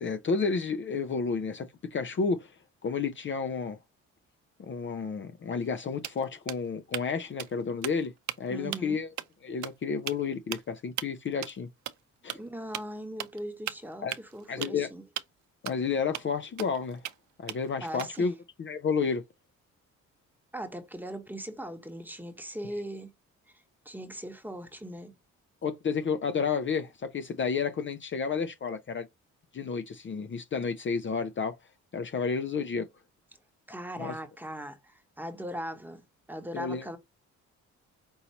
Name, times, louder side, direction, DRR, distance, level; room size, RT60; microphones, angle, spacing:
voice 1, 0.0-2.5 2.8-3.8 4.6-8.1 8.4-9.1 9.4-11.7 12.2-12.4 14.0-14.2 14.5-14.9 15.6-17.0 17.4-19.2 25.6-29.0 29.5-31.6 31.9-32.9 34.0-34.1 36.5-36.8, left 5 dB, 40° left, 0.6 m, -31 dB
sound 1, 5.6-5.8 6.0-7.1 7.4-7.5 7.8-8.4 8.7-8.9 9.2-9.3 9.6-9.7 10.1-10.2 10.5-10.6 11.0-11.1 11.4-11.6 11.9-12.0 12.3-12.4 12.7-12.8 13.2-13.4 13.7-14.8 15.2-15.3 15.7-15.8 16.1-16.2 16.6-17.1 17.5-18.3, right 13 dB, 70° right, 0.6 m, -36 dB
voice 2, 8.5-9.0 12.3-15.0 17.8-18.3 20.5-23.1 23.8-25.1 33.7-36.0 36.3-37.0, right 1 dB, 5° right, 1.1 m, -39 dB
5.5 x 2.8 x 2.9 m
cardioid pair, 90°, 30 cm